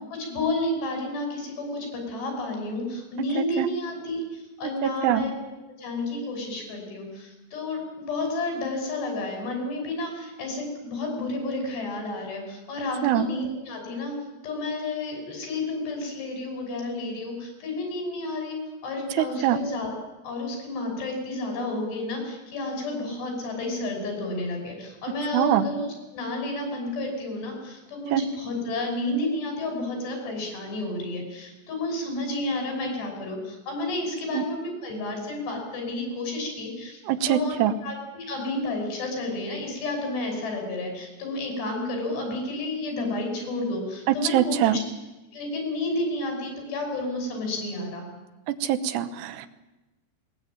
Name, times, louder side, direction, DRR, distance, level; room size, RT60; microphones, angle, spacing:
voice 1, 0.1-5.3 5.8-14.2 14.4-19.9 20.2-37.6 37.8-44.8 45.3-48.1, left 2 dB, 75° left, 3 dB, 8.1 m, -31 dB
voice 2, 3.4-3.7 4.8-5.2 13.0-13.3 19.2-19.6 25.3-25.6 28.1-28.2 34.3-34.4 37.1-37.7 44.1-44.8 48.5-49.5, right 11 dB, 85° right, 10 dB, 3.2 m, -23 dB
20.5 x 20.0 x 9.0 m, 1.0 s
omnidirectional pair, 4.9 m